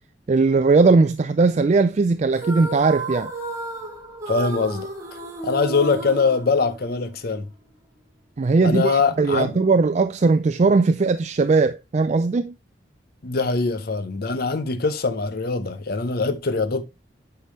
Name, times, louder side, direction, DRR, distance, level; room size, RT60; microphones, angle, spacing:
voice 1, 0.3-3.3 8.4-12.5, right 4 dB, 35° right, 0.3 m, -19 dB
sound 1, 2.3-7.1, right 3 dB, 15° right, 2.2 m, -33 dB
voice 2, 4.3-4.9 5.4-7.5 8.6-9.6 13.2-16.8, left 4 dB, 55° left, 0.7 m, -23 dB
8.3 x 5.9 x 3.1 m
head